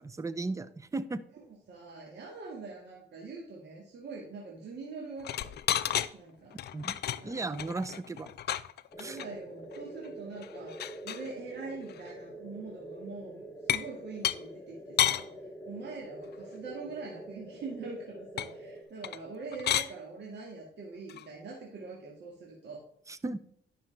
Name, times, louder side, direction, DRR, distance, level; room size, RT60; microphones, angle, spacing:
voice 1, 0.0-1.2 6.7-7.0 7.2-8.3 9.0-9.2 23.1-23.4, right 3 dB, 15° right, 14 dB, 0.6 m, -35 dB
voice 2, 1.3-5.5 6.1-6.5 7.2-7.6 9.0-10.8 11.0-22.8, right 4 dB, 60° right, -2 dB, 2.0 m, -43 dB
sound 1, 5.2-6.1 6.5-9.3 9.7-9.8 10.0-10.1 10.4-11.3 11.9-12.1 13.7-13.9 14.2-14.4 15.0-15.2 18.4-18.5 19.0-19.3 19.5-19.9 21.1-21.2, left 11 dB, 55° left, 0.5 m, -31 dB
sound 2, 8.9-18.8, right 1 dB, 10° left, 1.6 m, -46 dB
10.5 x 6.1 x 3.4 m, 0.65 s
cardioid pair, 90°, 20 cm